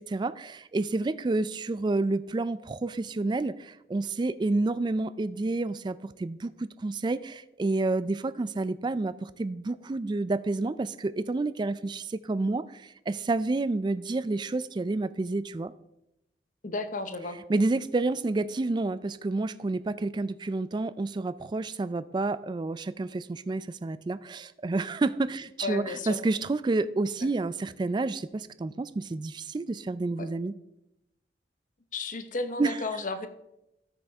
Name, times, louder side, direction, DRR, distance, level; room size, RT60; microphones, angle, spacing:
voice 1, 0.1-15.7 17.5-30.5 32.6-32.8, right 2 dB, 25° right, 15 dB, 0.3 m, -29 dB
voice 2, 16.6-17.4 25.6-26.2 30.2-30.3 31.9-33.3, left 3 dB, 45° left, 9 dB, 0.8 m, -33 dB
13.5 x 6.2 x 3.5 m, 0.87 s
head